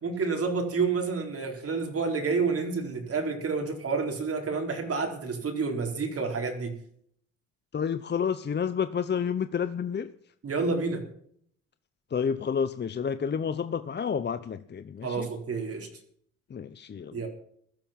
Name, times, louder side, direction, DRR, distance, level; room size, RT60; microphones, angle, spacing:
voice 1, 0.0-6.8 10.4-11.0 15.0-15.9 17.1-17.3, right 4 dB, 50° right, 2 dB, 4.3 m, -29 dB
voice 2, 7.7-10.1 12.1-15.3 16.5-17.3, left 7 dB, 35° left, 12 dB, 0.8 m, -30 dB
16.0 x 12.0 x 5.9 m, 0.64 s
cardioid pair, 90°, 30 cm